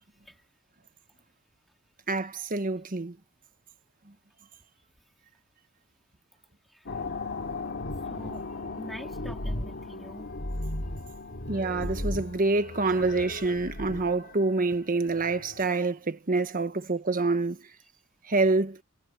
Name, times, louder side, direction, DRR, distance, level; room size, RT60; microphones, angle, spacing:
voice 1, 2.1-3.2 11.5-17.6 18.3-18.8, right 3 dB, 40° right, 1.3 m, -27 dB
sound 1, 6.9-15.7, left 2 dB, 55° left, 2.9 m, -36 dB
voice 2, 8.1-8.4 8.8-10.3, equal, ahead, 3.1 m, -44 dB
head